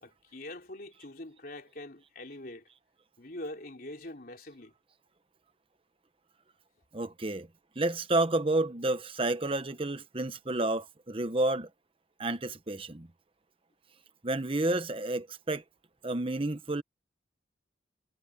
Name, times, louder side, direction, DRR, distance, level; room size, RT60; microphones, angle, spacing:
voice 1, 0.0-2.7 3.2-4.7, left 1 dB, 50° left, 3.7 m, -44 dB
voice 2, 6.9-7.5 7.8-11.7 12.2-13.1 14.2-15.6 16.0-16.8, right 2 dB, 30° right, 1.0 m, -30 dB
head